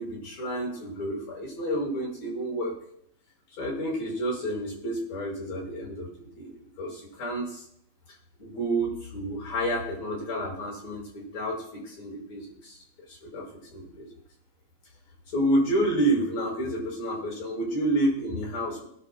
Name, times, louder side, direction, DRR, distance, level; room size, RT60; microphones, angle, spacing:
voice 1, 0.0-2.8 3.6-7.7 8.4-14.1 15.3-18.9, right 1 dB, 50° left, -2 dB, 7.0 m, -30 dB
29.0 x 11.5 x 2.2 m, 0.73 s
omnidirectional pair, 4.1 m